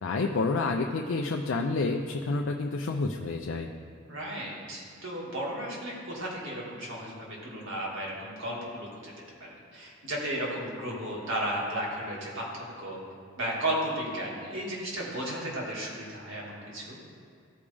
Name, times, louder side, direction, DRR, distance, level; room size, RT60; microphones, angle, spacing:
voice 1, 0.0-3.7, left 3 dB, 70° left, 2 dB, 0.4 m, -29 dB
voice 2, 4.1-9.1 9.4-13.0 13.4-17.0, right 1 dB, 70° right, -4 dB, 2.3 m, -34 dB
14.5 x 5.2 x 3.5 m, 2.3 s
head